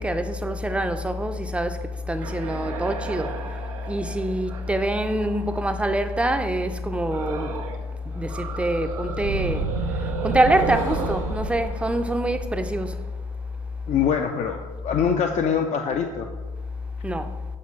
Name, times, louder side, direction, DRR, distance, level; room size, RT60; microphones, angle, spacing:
voice 1, 0.0-7.7 8.0-13.1 17.0-17.4, right 1 dB, 5° right, 0.5 m, -25 dB
sound 1, 2.2-6.0 7.1-7.9 8.1-13.0, right 4 dB, 90° right, 0.6 m, -32 dB
sound 2, 5.1-5.3 6.7-11.9, left 4 dB, 75° left, 0.8 m, -44 dB
voice 2, 13.9-16.3, left 7 dB, 40° left, 0.5 m, -24 dB
7.5 x 5.1 x 3.2 m
hypercardioid pair, 65°, 17 cm